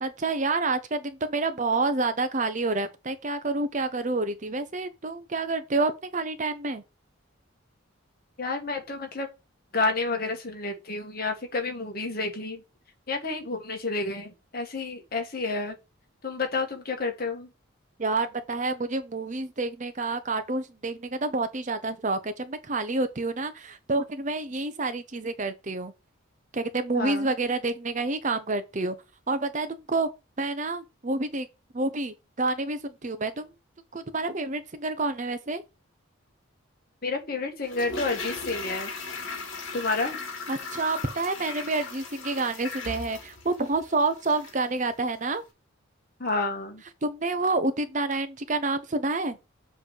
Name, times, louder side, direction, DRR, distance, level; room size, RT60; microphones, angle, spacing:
voice 1, 0.0-6.8 18.0-25.9 26.5-28.9 29.3-30.1 30.4-31.5 31.7-33.5 33.9-35.6 40.5-45.4 47.0-49.4, right 3 dB, 35° right, 0.7 m, -28 dB
voice 2, 8.4-9.3 9.7-12.6 13.1-15.7 16.2-17.5 26.9-27.3 37.0-38.9 39.7-40.2 46.2-46.8, left 3 dB, 45° left, 1.7 m, -30 dB
Toilet flush, 37.6-44.7 45.0-45.1, left 4 dB, 60° left, 2.2 m, -38 dB
7.5 x 3.3 x 6.4 m
head